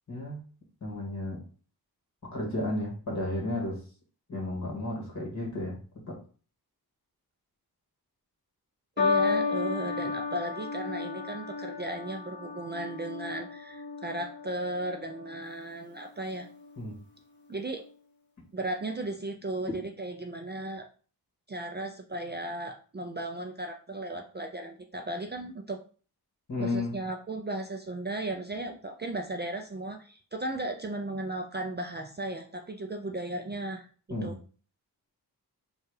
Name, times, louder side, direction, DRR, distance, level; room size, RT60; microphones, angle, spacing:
voice 1, 0.1-0.4 0.8-1.4 2.2-3.8 4.3-6.2 16.8-17.0 19.7-19.8 26.5-27.0 34.1-34.4, left 1 dB, 45° left, -1 dB, 1.9 m, -33 dB
sound 1, 9.0-15.5 16.3-16.7, left 4 dB, 30° left, 1.3 m, -33 dB
voice 2, 9.0-16.5 17.5-17.8 18.5-20.9 21.5-25.8 26.6-33.9 34.2-34.4, right 2 dB, 25° right, 3 dB, 0.4 m, -36 dB
4.5 x 2.4 x 4.8 m, 0.40 s
wide cardioid pair, 135°, 39 cm